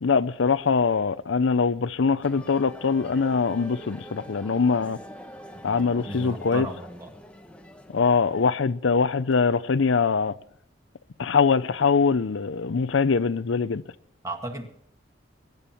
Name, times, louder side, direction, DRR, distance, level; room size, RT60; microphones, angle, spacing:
voice 1, 0.0-5.0 5.6-6.7 7.9-10.4 11.2-13.8, left 5 dB, 75° left, 0.6 m, -23 dB
sound 1, 2.2-8.4, equal, 5° left, 1.0 m, -44 dB
voice 2, 5.6-7.1 14.2-14.7, right 2 dB, 15° right, 1.9 m, -35 dB
22.5 x 11.0 x 4.4 m
head